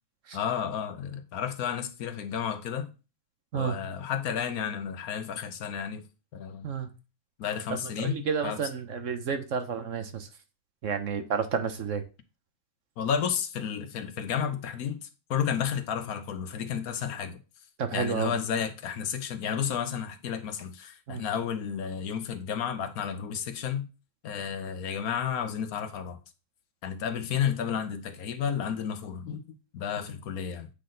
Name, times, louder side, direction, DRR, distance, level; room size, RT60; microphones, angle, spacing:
voice 1, 0.3-2.9 3.5-6.1 6.3-6.7 7.4-8.6 13.0-17.4 17.9-23.9 24.2-26.2 26.8-29.4 29.7-30.7, left 8 dB, 75° left, 1.2 m, -32 dB
voice 2, 7.7-10.3 10.8-12.0 17.8-18.3 21.1-21.3, right 6 dB, 60° right, 1.1 m, -31 dB
8.5 x 4.0 x 3.9 m
omnidirectional pair, 1.6 m